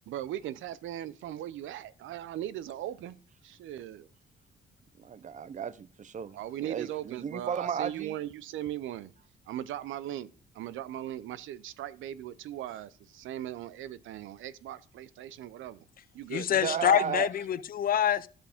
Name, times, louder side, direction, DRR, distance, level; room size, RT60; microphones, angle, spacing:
voice 1, 0.1-3.2 3.4-4.1 6.3-9.1 9.5-10.3 10.6-15.8 16.1-16.8, right 12 dB, 80° right, 0.6 m, -38 dB
voice 2, 5.0-8.2 16.6-17.3, right 8 dB, 40° right, 0.6 m, -34 dB
voice 3, 16.3-18.3, left 10 dB, 45° left, 0.6 m, -26 dB
11.5 x 7.0 x 3.5 m
cardioid pair, 90°, 20 cm